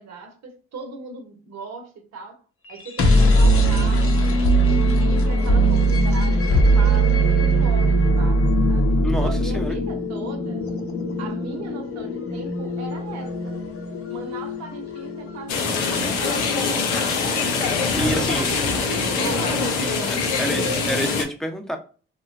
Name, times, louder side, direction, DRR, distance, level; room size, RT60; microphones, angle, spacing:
voice 1, 0.0-2.4 2.7-4.4 4.8-10.7 11.2-13.6 14.1-17.0 17.9-20.7, right 4 dB, 65° right, 0.9 m, -38 dB
sound 1, 2.7-16.5, right 1 dB, 50° left, 0.7 m, -20 dB
voice 2, 9.0-9.8 17.9-18.5 19.8-21.8, equal, ahead, 0.8 m, -28 dB
sound 2, 15.5-21.2, left 4 dB, 85° left, 0.6 m, -23 dB
3.0 x 2.2 x 2.5 m
hypercardioid pair, 45°, 29 cm